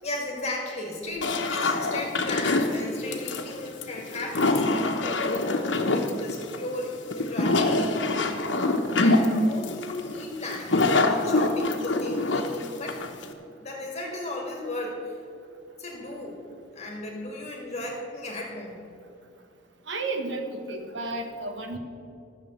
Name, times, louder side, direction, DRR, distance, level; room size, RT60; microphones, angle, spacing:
voice 1, 0.0-13.0 13.6-15.2 15.8-16.4 16.7-18.8 21.7-21.8, left 2 dB, 35° left, -1 dB, 2.0 m, -35 dB
sound 1, 1.2-13.3, left 2 dB, 80° left, 1.1 m, -25 dB
voice 2, 19.9-21.8, right 2 dB, 80° right, 5 dB, 1.4 m, -32 dB
14.0 x 6.7 x 7.8 m, 2.5 s
head